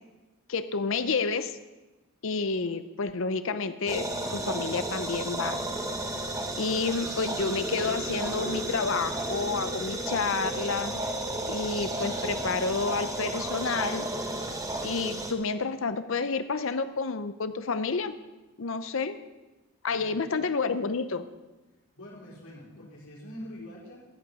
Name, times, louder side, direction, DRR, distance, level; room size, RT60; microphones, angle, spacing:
voice 1, 0.5-1.6 2.2-4.0 4.3-5.6 6.6-11.0 11.5-14.1 14.8-18.1 18.6-19.2 19.8-21.2, left 4 dB, 60° left, 11 dB, 0.6 m, -29 dB
sound 1, 3.9-15.3, right 1 dB, 15° right, 1.0 m, -33 dB
voice 2, 22.0-24.1, left 1 dB, 85° left, -6 dB, 4.5 m, -44 dB
13.5 x 8.6 x 5.4 m, 1.1 s
head